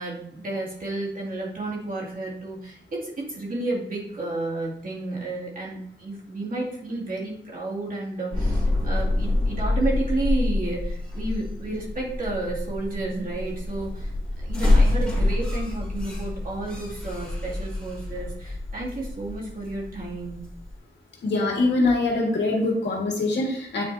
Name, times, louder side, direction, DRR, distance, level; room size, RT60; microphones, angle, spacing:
voice 1, 0.0-14.1 14.4-20.4, right 2 dB, 50° right, -4 dB, 2.4 m, -31 dB
sound 1, 8.3-20.7, left 2 dB, 5° left, 3.0 m, -26 dB
voice 2, 21.2-23.8, left 2 dB, 70° left, -1 dB, 1.9 m, -23 dB
9.2 x 4.4 x 3.4 m, 0.65 s
wide cardioid pair, 130°, 19 cm